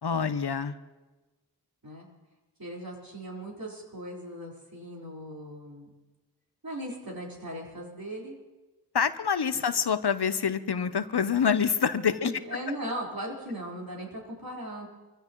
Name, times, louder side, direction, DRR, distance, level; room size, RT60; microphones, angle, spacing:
voice 1, 0.0-0.8 8.9-12.3, left 7 dB, 70° left, 12 dB, 0.8 m, -26 dB
voice 2, 2.6-5.9 6.6-8.4 9.5-9.6 12.2-14.9, right 1 dB, 55° right, -3 dB, 4.4 m, -38 dB
25.0 x 15.5 x 3.1 m, 1.2 s
wide cardioid pair, 45°, 41 cm